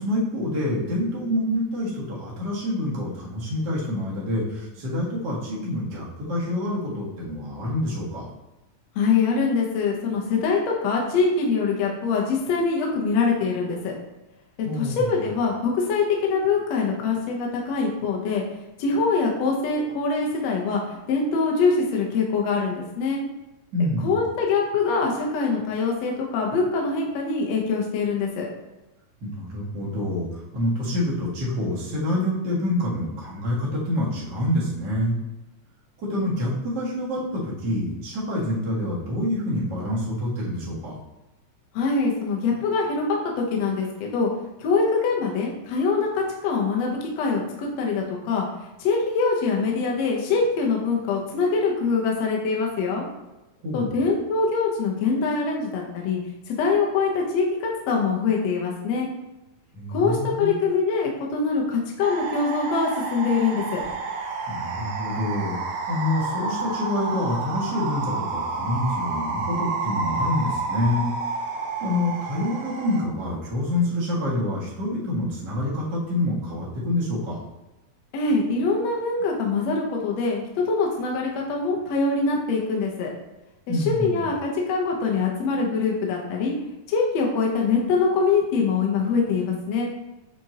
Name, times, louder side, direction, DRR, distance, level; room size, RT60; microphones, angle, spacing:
voice 1, 0.0-8.2 14.6-15.2 23.7-24.2 29.2-35.1 36.0-41.0 53.6-54.0 59.7-60.6 64.5-71.1 71.8-77.4 83.7-84.3, left 1 dB, 40° right, -6 dB, 2.1 m, -27 dB
voice 2, 9.0-13.9 14.6-18.4 18.8-23.2 24.0-28.5 41.7-44.3 44.6-48.4 48.8-53.1 53.7-56.2 56.5-59.1 59.9-63.8 78.1-83.1 83.7-86.5 86.9-89.9, left 4 dB, 65° left, -1 dB, 2.0 m, -24 dB
sound 1, 62.0-73.0, right 4 dB, 75° right, 1.5 m, -30 dB
7.5 x 4.3 x 2.9 m, 1.0 s
omnidirectional pair, 3.6 m